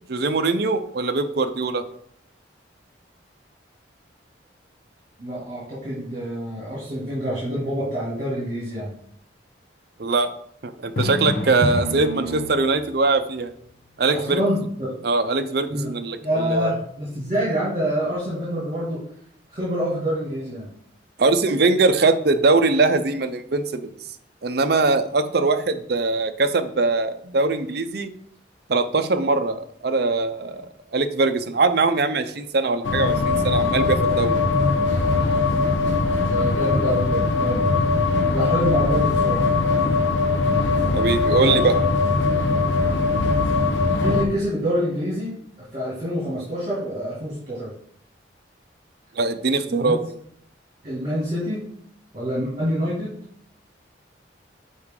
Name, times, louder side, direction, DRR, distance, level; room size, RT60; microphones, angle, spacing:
voice 1, 0.1-1.8 10.0-10.3 10.6-13.5 14.0-14.4 15.0-16.7 21.2-23.9 24.4-28.1 28.7-30.7 30.9-34.4 40.9-41.7 49.2-50.0, right 3 dB, 55° right, 9 dB, 0.6 m, -21 dB
voice 2, 5.2-8.9 14.1-14.9 15.7-15.9 16.2-19.0 19.5-20.7 36.2-37.7 38.3-39.4 41.4-41.6 43.9-45.3 45.7-47.7 49.7-50.0 50.8-51.6 52.1-53.1, equal, 35° right, -7 dB, 2.2 m, -26 dB
Drum, 11.0-13.0, left 1 dB, 55° left, 0.8 m, -27 dB
sound 1, 32.8-44.3, left 3 dB, 85° left, 0.8 m, -21 dB
6.3 x 4.7 x 3.7 m, 0.66 s
head